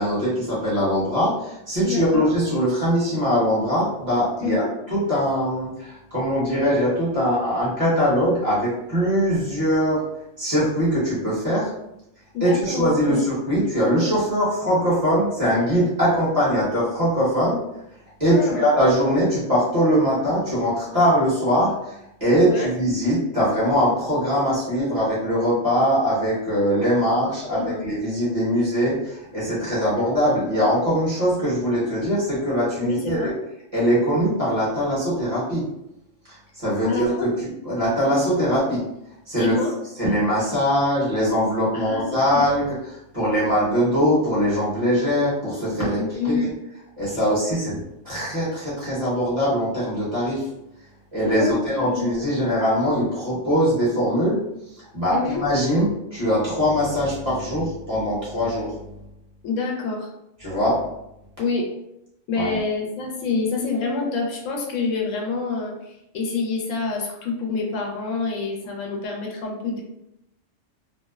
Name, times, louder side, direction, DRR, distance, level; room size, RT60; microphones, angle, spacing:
voice 1, 0.0-10.0 10.4-11.7 12.4-17.6 18.2-21.9 22.2-33.3 33.7-35.6 36.6-37.3 37.6-38.8 39.3-39.5 40.0-42.8 43.1-46.5 47.0-47.8 48.0-50.4 51.1-54.4 54.9-58.7 60.4-60.8 62.3-62.6, equal, 30° right, -9 dB, 1.0 m, -22 dB
voice 2, 1.8-2.3 4.4-4.7 12.3-13.2 18.3-18.7 22.4-22.7 27.5-27.9 30.0-30.6 32.8-33.3 36.8-37.3 39.4-39.7 41.7-42.4 46.0-46.5 51.3-52.1 55.1-55.4 59.4-60.1 61.4-61.7 62.3-69.8, left 4 dB, 80° left, 0 dB, 0.9 m, -27 dB
2.6 x 2.0 x 2.3 m, 0.84 s
omnidirectional pair, 1.3 m